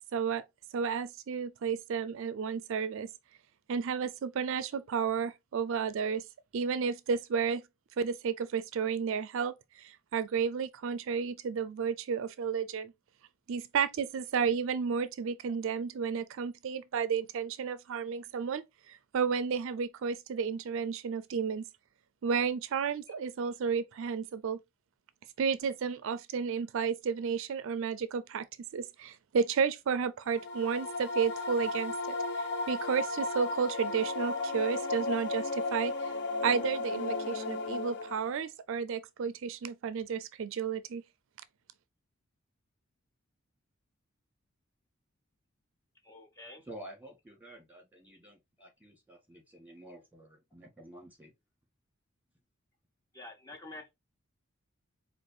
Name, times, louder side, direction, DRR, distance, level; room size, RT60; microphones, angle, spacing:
voice 1, 0.1-0.4 0.7-3.1 3.7-6.2 6.5-7.6 8.0-12.9 13.5-21.7 22.2-24.6 25.4-28.5 28.7-36.2 36.4-41.0, right 6 dB, 65° right, 0.4 m, -32 dB
sound 1, 30.3-38.4, left 3 dB, 55° left, 0.8 m, -34 dB
voice 2, 46.0-46.6 53.1-53.9, left 2 dB, 15° left, 0.6 m, -47 dB
voice 3, 46.6-51.3, right 1 dB, 10° right, 1.7 m, -50 dB
4.7 x 2.4 x 4.2 m
head